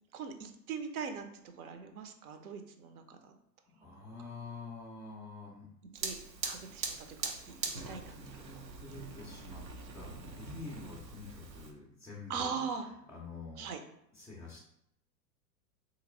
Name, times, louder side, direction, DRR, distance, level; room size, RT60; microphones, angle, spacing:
voice 1, 0.1-1.3 1.6-3.3 3.8-4.1 5.9-6.2 6.4-8.4 12.3-12.9 13.6-13.8, right 6 dB, 60° right, 6 dB, 0.8 m, -41 dB
voice 2, 3.7-5.7 8.1-9.6 9.9-12.7 13.1-13.7 14.1-14.6, left 3 dB, 5° left, -6 dB, 0.4 m, -47 dB
Fire, 5.9-11.7, right 4 dB, 90° right, 0.8 m, -42 dB
3.1 x 2.9 x 3.7 m, 0.76 s
hypercardioid pair, 100°, 49 cm